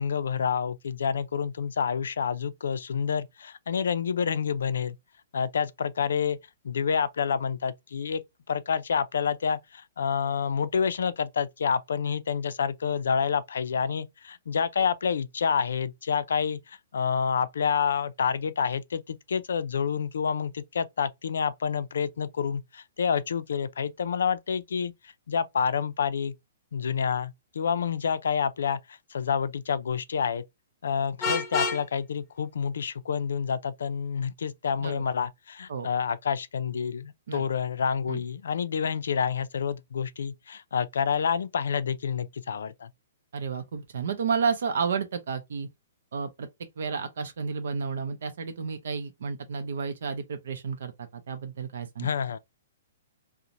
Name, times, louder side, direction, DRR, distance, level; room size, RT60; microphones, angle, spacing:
voice 1, 0.0-5.0 5.3-6.4 6.6-8.2 8.5-26.3 26.7-30.4 30.8-42.9 52.0-52.4, left 6 dB, 75° left, 0.4 m, -28 dB
Vehicle horn car horn honking, 31.2-31.8, left 4 dB, 10° left, 0.5 m, -27 dB
voice 2, 43.3-45.7 46.1-46.5 46.8-52.1, right 5 dB, 60° right, 0.5 m, -31 dB
2.5 x 2.1 x 2.9 m
hypercardioid pair, 175°, 0 cm